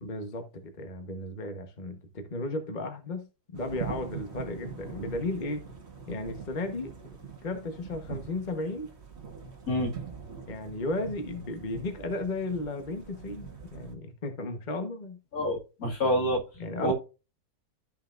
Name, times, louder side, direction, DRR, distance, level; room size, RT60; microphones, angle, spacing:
voice 1, 0.0-5.6 6.1-6.9 7.4-8.9 10.5-15.2 16.6-16.9, left 2 dB, 30° left, 1.2 m, -34 dB
sound 1, 3.5-13.9, right 6 dB, 45° right, 1.7 m, -43 dB
voice 2, 15.3-16.4 16.8-16.9, equal, 65° left, 2.6 m, -27 dB
13.5 x 5.7 x 2.5 m
omnidirectional pair, 1.6 m